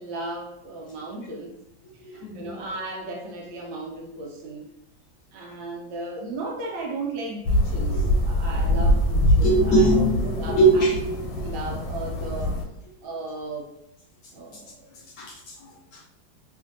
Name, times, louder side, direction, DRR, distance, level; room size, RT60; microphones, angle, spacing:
voice 1, 0.0-1.5 2.0-4.6 5.3-10.8 11.3-12.6 13.0-13.7 14.3-14.9, right 2 dB, 85° right, -1 dB, 1.4 m, -35 dB
voice 2, 2.0-2.6 7.9-8.0 8.6-8.8 9.4-11.2 15.2-16.1, right 2 dB, 75° left, -2 dB, 1.0 m, -22 dB
sound 1, 7.4-12.6, equal, 90° left, 1.4 m, -23 dB
3.2 x 2.5 x 2.5 m, 0.83 s
omnidirectional pair, 2.1 m